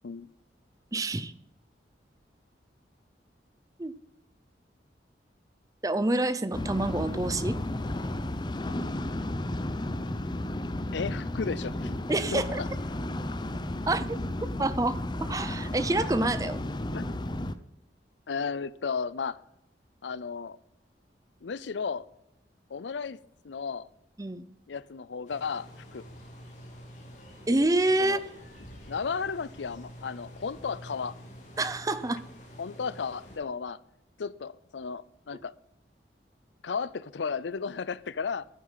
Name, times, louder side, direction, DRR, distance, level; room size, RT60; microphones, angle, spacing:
voice 1, 0.9-1.3 3.8-3.9 5.8-7.6 12.1-12.6 13.9-14.1 14.6-16.6 24.2-24.4 27.5-28.2 31.6-32.2, right 2 dB, 20° right, 13 dB, 0.7 m, -27 dB
sound 1, 6.5-17.5, left 1 dB, 25° left, 0.7 m, -33 dB
voice 2, 10.9-12.0 12.3-12.7 16.9-17.1 18.3-19.4 20.0-20.6 21.4-22.1 22.7-23.2 23.4-23.9 24.7-26.0 28.0-28.2 28.9-31.2 32.6-33.8 34.2-35.5 36.6-38.5, left 5 dB, 90° left, 19 dB, 0.5 m, -34 dB
sound 2, 25.3-33.4, equal, 45° left, 3.2 m, -48 dB
11.5 x 9.8 x 5.7 m, 0.80 s
head